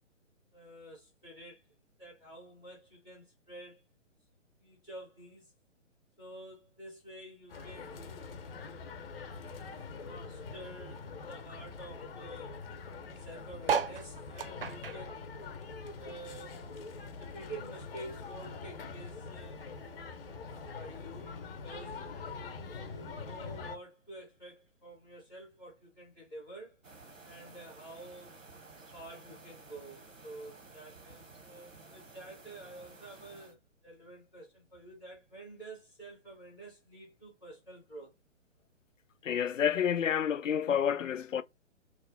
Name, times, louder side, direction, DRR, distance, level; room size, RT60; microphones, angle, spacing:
voice 1, 0.5-1.6 2.0-3.8 4.6-5.5 6.2-8.1 10.0-12.6 13.2-15.3 16.0-16.7 17.2-19.7 20.3-22.0 22.6-26.8 27.2-28.4 28.9-33.6 33.8-38.1, right 2 dB, 5° left, 0.4 m, -49 dB
sound 1, 7.5-23.8, left 4 dB, 50° left, 0.7 m, -44 dB
sound 2, 13.6-16.4 16.7-18.2 18.7-18.8 19.0-19.1 19.3-19.7 20.5-20.6, right 7 dB, 50° right, 0.4 m, -36 dB
sound 3, 26.8-33.6, right 3 dB, 85° right, 0.9 m, -54 dB
voice 2, 39.2-41.4, left 8 dB, 80° left, 0.5 m, -29 dB
3.1 x 2.1 x 3.7 m
figure-of-eight pair, 130°, 38 cm